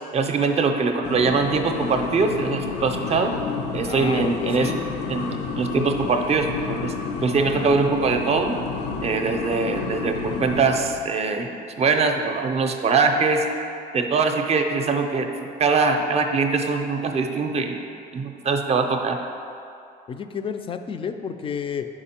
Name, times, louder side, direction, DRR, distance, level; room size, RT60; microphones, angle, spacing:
voice 1, 0.1-3.4 3.7-4.8 5.1-6.9 7.2-8.6 9.0-13.5 13.9-17.8 18.1-19.2, right 4 dB, 40° right, 5 dB, 0.5 m, -22 dB
sound 1, 1.0-11.1, left 5 dB, 90° left, 0.5 m, -30 dB
voice 2, 3.8-4.8 20.1-21.9, left 6 dB, 30° left, 8 dB, 0.3 m, -30 dB
5.1 x 4.9 x 4.3 m, 2.6 s
cardioid pair, 110°, 17 cm